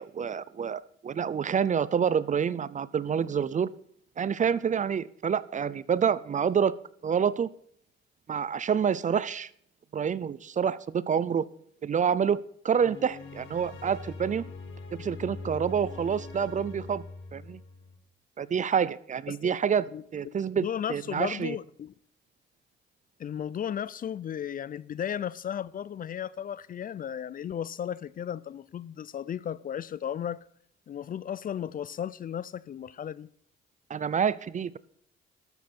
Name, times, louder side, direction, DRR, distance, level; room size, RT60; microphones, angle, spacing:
voice 1, 0.0-3.7 4.2-6.8 7.0-7.5 8.3-9.5 9.9-11.5 11.8-14.4 14.9-17.0 17.3-17.6 18.4-19.9 20.1-21.6 33.9-34.8, right 7 dB, 40° right, 0.6 m, -27 dB
sound 1, 12.8-18.0, left 3 dB, 75° left, 2.2 m, -42 dB
voice 2, 19.9-21.9 23.2-30.4 30.9-33.3, left 9 dB, 45° left, 0.5 m, -35 dB
13.0 x 7.3 x 6.1 m
cardioid pair, 90°, 20 cm